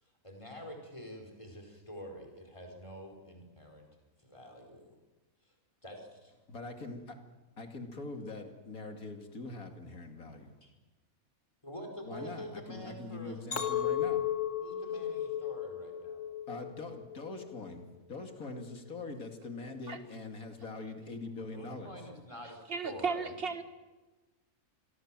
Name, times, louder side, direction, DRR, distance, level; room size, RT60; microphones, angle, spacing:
voice 1, 0.0-3.9 4.2-5.0 5.4-5.5 5.8-6.3 10.6-10.7 11.6-13.9 14.6-16.2 21.3-23.3, equal, 20° left, 2 dB, 4.8 m, -47 dB
voice 2, 6.5-7.2 7.6-10.5 12.0-14.3 16.5-21.9, left 3 dB, 75° left, 5 dB, 3.0 m, -43 dB
Chink clink, 13.5-17.9 18.3-18.8, left 10 dB, 55° left, 2.1 m, -35 dB
voice 3, 22.7-23.6, right 5 dB, 40° right, 9 dB, 1.9 m, -34 dB
27.0 x 23.0 x 7.5 m, 1.2 s
omnidirectional pair, 1.5 m